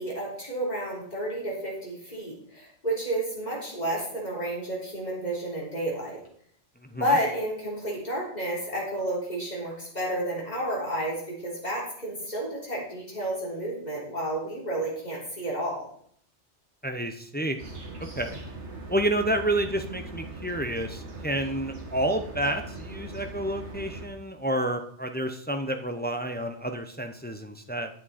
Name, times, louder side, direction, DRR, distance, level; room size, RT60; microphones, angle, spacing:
voice 1, 0.0-6.2 6.9-15.9, right 1 dB, 40° left, -4 dB, 3.6 m, -31 dB
voice 2, 16.8-17.6 18.2-18.4 18.9-27.9, right 1 dB, 10° left, 6 dB, 0.5 m, -29 dB
sound 1, 17.6-24.1, right 2 dB, 85° right, 1.9 m, -40 dB
10.0 x 7.5 x 4.2 m, 0.63 s
omnidirectional pair, 1.1 m